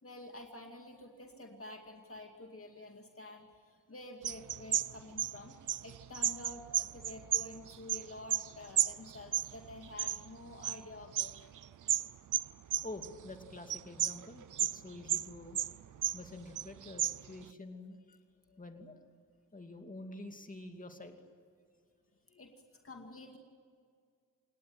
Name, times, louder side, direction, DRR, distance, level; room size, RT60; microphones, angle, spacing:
voice 1, 0.0-11.6 18.5-18.6 22.3-22.5 22.8-23.4, left 2 dB, 45° left, 3 dB, 2.4 m, -49 dB
sound 1, 4.2-8.5 8.8-10.8 11.1-13.3 13.7-14.8 15.1-16.3 16.6-17.4, right 10 dB, 65° right, 0.6 m, -33 dB
voice 2, 12.8-15.6 16.1-18.2 18.6-19.0 19.5-21.1, left 2 dB, 25° left, 5 dB, 2.7 m, -47 dB
28.5 x 19.5 x 8.9 m, 2.2 s
wide cardioid pair, 95°, 32 cm